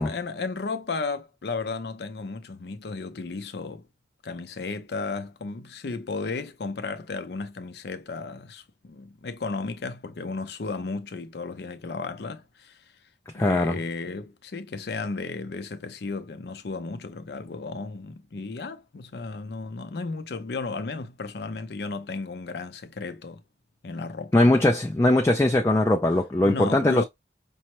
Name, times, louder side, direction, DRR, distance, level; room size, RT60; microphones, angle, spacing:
voice 1, 0.0-3.8 4.2-12.8 13.3-23.4 23.8-24.4 26.4-27.0, left 3 dB, 65° left, 0.5 m, -34 dB
voice 2, 13.3-13.8 24.3-27.0, left 1 dB, 15° left, 0.3 m, -20 dB
5.4 x 2.0 x 3.0 m
head